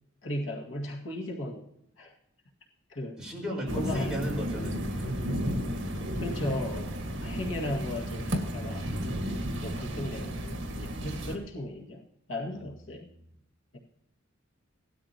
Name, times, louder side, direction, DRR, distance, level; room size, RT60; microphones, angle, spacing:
voice 1, 0.2-1.6 2.0-2.1 2.9-3.2 3.7-4.2 6.2-8.9 9.6-12.0 12.3-13.1, left 1 dB, 70° left, -1 dB, 1.9 m, -36 dB
voice 2, 3.2-5.2 5.4-5.9 9.2-9.5 12.5-12.7 13.0-13.2, equal, 5° right, -4 dB, 4.8 m, -37 dB
sound 1, 3.7-11.4, equal, 60° right, 1.8 m, -33 dB
18.0 x 12.5 x 2.9 m, 0.79 s
head